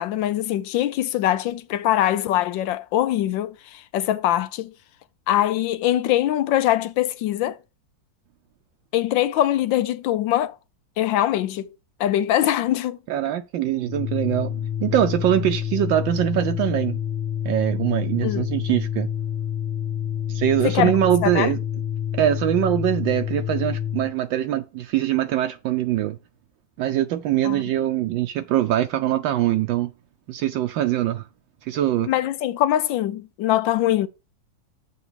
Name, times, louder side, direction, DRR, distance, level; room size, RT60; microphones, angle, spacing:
voice 1, 0.0-4.7 5.3-7.6 8.9-10.6 11.0-11.7 12.0-13.0 18.2-18.5 20.6-20.9 21.2-21.5 27.4-27.6 32.1-34.1, left 13 dB, 75° left, 1.3 m, -22 dB
voice 2, 13.1-14.5 14.8-17.0 17.4-19.1 20.3-21.6 22.1-26.2 26.8-29.9 30.3-31.2 31.7-32.1, right 12 dB, 75° right, 1.3 m, -23 dB
Organ, 13.8-24.1, left 9 dB, 40° left, 1.0 m, -28 dB
7.0 x 4.6 x 6.2 m
omnidirectional pair, 2.2 m